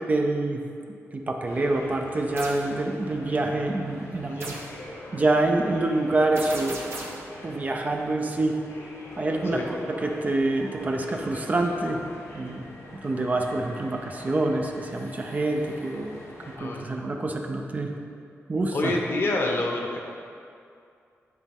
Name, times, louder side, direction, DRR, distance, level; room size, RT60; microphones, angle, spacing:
voice 1, 0.1-0.6 1.1-4.5 5.1-6.8 7.4-8.6 9.2-9.6 10.0-12.0 12.3-12.6 13.0-16.2 16.6-17.9 18.5-18.9, right 2 dB, 30° right, 2 dB, 0.5 m, -26 dB
sound 1, 1.5-16.6, left 1 dB, 80° left, 1.1 m, -43 dB
sound 2, 2.4-2.7 4.4-4.8 6.4-7.3, right 2 dB, 55° right, 1.0 m, -37 dB
voice 2, 18.7-20.0, left 2 dB, 50° left, 0 dB, 0.9 m, -27 dB
9.5 x 4.1 x 3.6 m, 2.4 s
wide cardioid pair, 125°, 5 cm